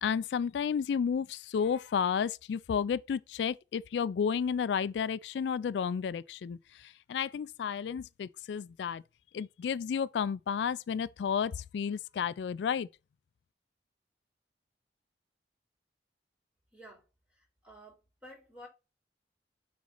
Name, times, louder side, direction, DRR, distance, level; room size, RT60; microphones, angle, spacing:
voice 1, 0.0-9.0 9.3-12.9, left 7 dB, 75° left, 0.3 m, -32 dB
voice 2, 16.7-17.0 17.6-18.7, equal, 5° right, 3.3 m, -51 dB
6.3 x 4.0 x 3.9 m
head